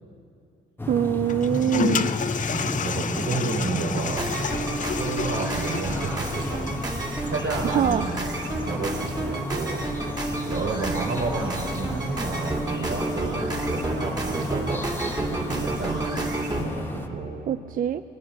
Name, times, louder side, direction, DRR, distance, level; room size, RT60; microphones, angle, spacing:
sound 1, 0.8-17.1, left 1 dB, 10° left, 0.9 m, -34 dB
voice 1, 0.9-2.1 7.6-8.1 17.5-18.0, right 10 dB, 45° right, 11 dB, 0.4 m, -24 dB
Toilet flush, 1.3-8.2, left 7 dB, 40° left, 0.6 m, -31 dB
voice 2, 2.5-4.4 4.6-7.0 7.2-8.3 8.6-16.3 16.6-17.5, right 3 dB, 75° right, 0 dB, 3.1 m, -31 dB
sound 2, 4.1-16.7, right 1 dB, 20° right, 2.2 m, -30 dB
21.0 x 8.6 x 6.6 m, 2.6 s
cardioid pair, 90°, 20 cm